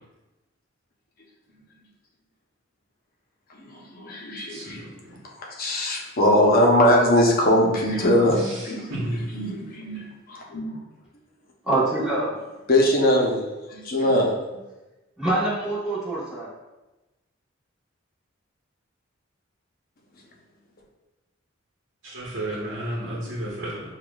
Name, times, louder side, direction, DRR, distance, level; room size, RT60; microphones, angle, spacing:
voice 1, 3.5-4.8 5.4-9.0 9.3-10.7 12.7-13.4 13.7-14.3, left 1 dB, 45° left, -2 dB, 0.8 m, -21 dB
voice 2, 4.5-5.2 8.3-9.3 22.0-23.8, right 1 dB, 60° right, -6 dB, 0.9 m, -32 dB
voice 3, 11.7-12.3 15.2-16.5, right 2 dB, 5° right, -9 dB, 1.3 m, -25 dB
6.4 x 2.4 x 2.3 m, 1.1 s
head